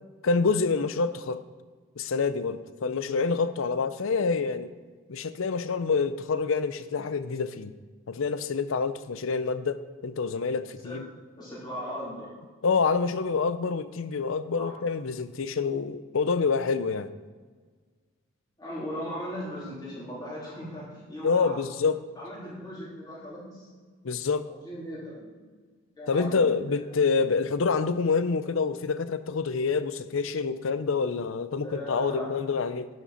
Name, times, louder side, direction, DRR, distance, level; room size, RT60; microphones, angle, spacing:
voice 1, 0.2-1.4 2.0-4.7 5.1-7.7 8.1-11.1 12.6-17.1 21.2-22.0 24.0-24.5 26.1-32.9, left 4 dB, 70° left, 13 dB, 0.5 m, -27 dB
voice 2, 11.3-12.3 14.6-14.7 18.6-21.6 22.2-23.7 24.5-25.4 26.0-26.8 31.6-32.4, equal, 20° left, -7 dB, 3.4 m, -38 dB
11.0 x 7.4 x 4.3 m, 1.5 s
head